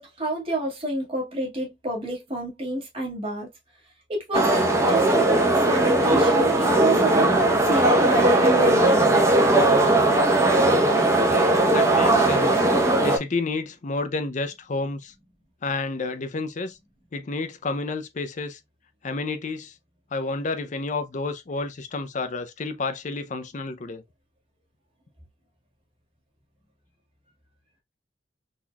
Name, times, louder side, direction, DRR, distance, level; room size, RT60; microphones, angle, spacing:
voice 1, 0.0-3.5 4.1-7.3 7.6-9.2, right 2 dB, 35° right, 1.7 m, -28 dB
sound 1, 4.3-13.2, right 2 dB, 15° right, 0.7 m, -19 dB
voice 2, 11.7-12.7 13.0-15.1 15.6-16.8 17.1-18.6 19.0-19.7 20.1-24.0, left 3 dB, 45° left, 0.5 m, -30 dB
4.0 x 3.0 x 2.3 m
head